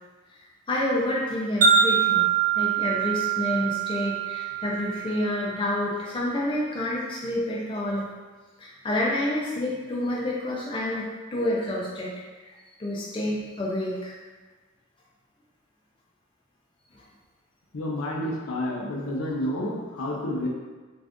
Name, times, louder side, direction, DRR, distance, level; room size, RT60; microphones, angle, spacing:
voice 1, 0.7-2.3 2.6-8.1 8.6-12.1 12.4-12.5 12.8-14.1 16.9-17.0, left 1 dB, 25° left, -4 dB, 0.3 m, -28 dB
Wind chime, 1.6-5.9, right 7 dB, 40° right, 0.5 m, -24 dB
voice 2, 17.7-20.5, left 1 dB, 75° left, -2 dB, 0.6 m, -29 dB
2.5 x 2.4 x 3.4 m, 1.3 s
head